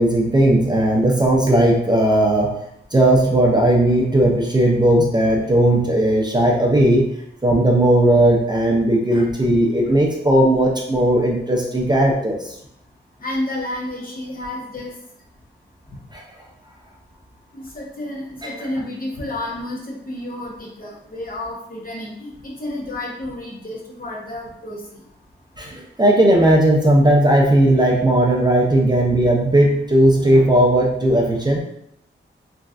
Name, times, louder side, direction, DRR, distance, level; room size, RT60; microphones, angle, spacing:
voice 1, 0.0-2.5 2.9-7.1 7.4-12.5 16.1-16.2 18.4-18.5 25.6-31.6, right 1 dB, 20° right, -2 dB, 0.4 m, -16 dB
voice 2, 13.2-14.9 17.5-24.8, left 1 dB, 45° left, -3 dB, 0.8 m, -30 dB
3.0 x 2.5 x 2.4 m, 0.73 s
wide cardioid pair, 95°, 21 cm